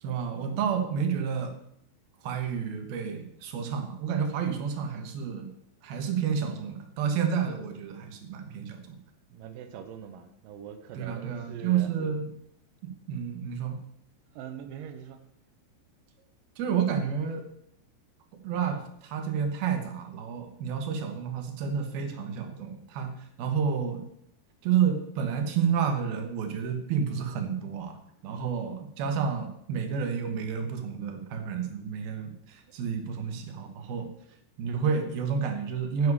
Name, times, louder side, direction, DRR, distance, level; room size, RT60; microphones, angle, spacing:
voice 1, 0.0-1.5 2.2-5.5 5.8-9.0 11.0-12.2 13.1-13.8 16.6-17.5 18.4-24.1 24.6-28.0 28.2-34.1 34.6-36.1, right 7 dB, 65° right, 6 dB, 2.7 m, -30 dB
voice 2, 9.3-11.9 14.3-15.2, right 8 dB, 85° right, 7 dB, 1.9 m, -42 dB
10.5 x 9.9 x 4.8 m, 0.71 s
omnidirectional pair, 5.2 m